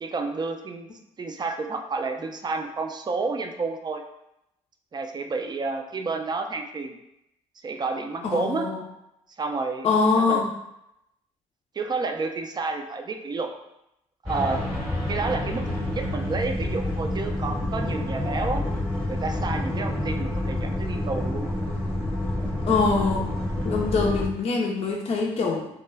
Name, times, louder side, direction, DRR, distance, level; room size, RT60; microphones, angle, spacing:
voice 1, 0.0-0.9 1.2-4.0 4.9-7.0 7.6-8.7 9.4-9.9 10.2-10.4 11.7-13.5 14.2-14.6 15.1-18.6 19.1-21.5, right 3 dB, 30° right, 5 dB, 0.4 m, -30 dB
voice 2, 8.2-8.8 9.8-10.5 22.7-23.3 23.6-25.7, left 4 dB, 40° left, 0 dB, 0.5 m, -23 dB
sound 1, 14.3-24.3, left 1 dB, 5° left, 0.9 m, -28 dB
2.2 x 2.1 x 3.3 m, 0.83 s
hypercardioid pair, 55°, 15 cm